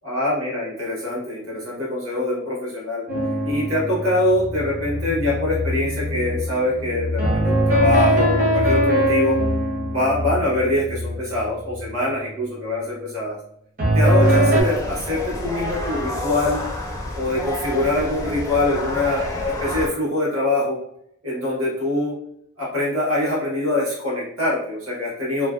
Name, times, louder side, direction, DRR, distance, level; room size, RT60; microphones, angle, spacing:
voice 1, 0.0-3.0 3.4-9.4 9.8-13.3 13.9-16.6 17.1-20.8 21.2-22.1 22.6-25.5, left 2 dB, 85° right, -6 dB, 1.0 m, -24 dB
sound 1, 3.1-5.4 7.2-11.0 13.8-14.6, right 1 dB, 40° right, 0.6 m, -21 dB
sound 2, 4.3-12.0, left 3 dB, 85° left, 0.4 m, -30 dB
sound 3, 14.2-19.9, left 1 dB, 15° left, 0.4 m, -29 dB
2.4 x 2.1 x 2.3 m, 0.73 s
head